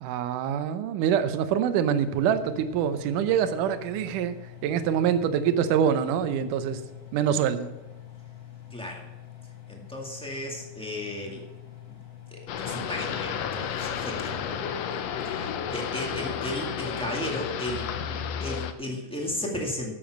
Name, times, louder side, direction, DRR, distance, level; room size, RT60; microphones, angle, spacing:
voice 1, 0.0-4.3 4.6-6.8 7.1-7.7, right 8 dB, 75° right, 11 dB, 2.2 m, -25 dB
Engine, 1.9-18.3, left 11 dB, 45° left, 2.2 m, -46 dB
voice 2, 8.7-9.0 9.7-11.4 11.9-12.0 12.3-14.6 15.2-17.9 18.4-20.0, left 1 dB, 5° left, -1 dB, 0.8 m, -34 dB
sound 1, 12.5-18.7, left 8 dB, 85° left, 1.4 m, -32 dB
12.5 x 7.0 x 6.0 m, 1.1 s
omnidirectional pair, 4.0 m